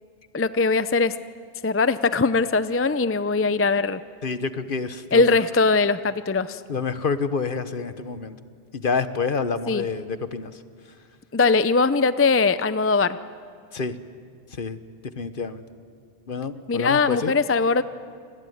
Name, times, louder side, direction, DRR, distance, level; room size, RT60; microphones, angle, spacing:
voice 1, 0.3-1.1 1.6-4.0 5.1-6.6 9.7-9.8 11.3-13.2 16.7-17.8, left 4 dB, 15° left, 13 dB, 0.5 m, -21 dB
voice 2, 4.2-5.4 6.7-8.3 8.7-10.5 13.7-14.0 14.6-14.8 15.1-15.6 16.3-17.3, left 5 dB, 60° left, 11 dB, 1.3 m, -28 dB
28.5 x 20.5 x 9.4 m, 2.2 s
omnidirectional pair, 1.0 m